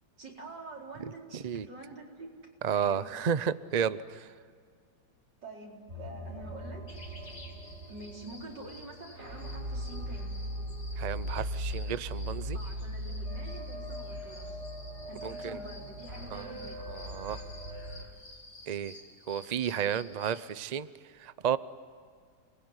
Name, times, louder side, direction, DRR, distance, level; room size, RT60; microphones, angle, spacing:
voice 1, 0.2-2.4 2.7-3.1 5.4-6.9 7.9-10.5 12.5-14.6 15.0-16.8, right 2 dB, 85° right, -1 dB, 5.0 m, -46 dB
voice 2, 1.3-1.7 2.6-4.3 11.0-12.6 15.2-15.6 16.3-16.5 16.9-17.4 18.7-19.0 19.3-20.9 21.2-21.6, right 8 dB, 60° right, 15 dB, 0.4 m, -32 dB
sound 1, 5.9-18.0, equal, 40° right, 5.5 m, -39 dB
sound 2, 6.9-20.5, left 2 dB, 55° left, 4.1 m, -52 dB
29.0 x 20.5 x 9.7 m, 2.1 s
omnidirectional pair, 1.8 m